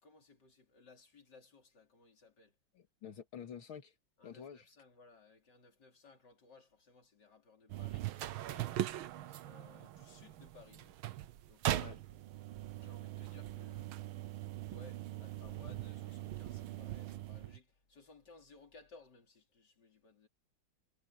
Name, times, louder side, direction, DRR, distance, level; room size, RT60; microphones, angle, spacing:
voice 1, 0.0-2.6 4.2-8.8 9.4-11.0 11.5-12.2 12.8-13.9 14.3-14.4 14.7-20.3, left 4 dB, 55° left, 4.2 m, -61 dB
voice 2, 2.7-3.9 4.2-4.7 9.3-9.4 11.8-12.0, left 8 dB, 80° left, 2.8 m, -49 dB
sound 1, 7.7-17.6, right 13 dB, 90° right, 1.7 m, -41 dB
omnidirectional pair, 2.2 m